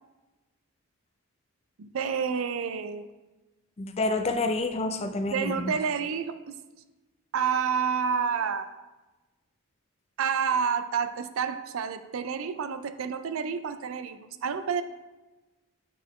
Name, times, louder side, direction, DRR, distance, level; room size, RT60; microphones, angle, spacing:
voice 1, 1.8-3.1 5.3-6.6 7.3-8.7 10.2-14.8, right 6 dB, 65° right, 11 dB, 0.4 m, -29 dB
voice 2, 3.8-5.7, left 2 dB, 30° left, 7 dB, 0.3 m, -28 dB
8.3 x 3.9 x 3.1 m, 1.1 s
head